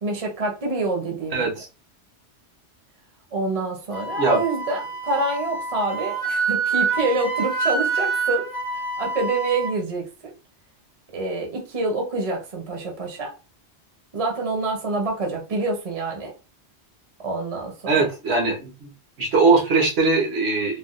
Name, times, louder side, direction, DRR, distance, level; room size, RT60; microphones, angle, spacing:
voice 1, 0.0-1.6 3.3-8.5 8.7-10.3 11.1-13.3 14.1-16.3 17.2-18.1, right 2 dB, 35° right, 0.8 m, -27 dB
voice 2, 1.3-1.7 4.2-4.4 17.9-18.9 19.2-20.8, right 3 dB, 75° right, 1.3 m, -20 dB
Wind instrument woodwind instrument, 3.9-9.7, right 4 dB, 30° left, 0.4 m, -26 dB
3.4 x 2.3 x 2.4 m
omnidirectional pair, 1.1 m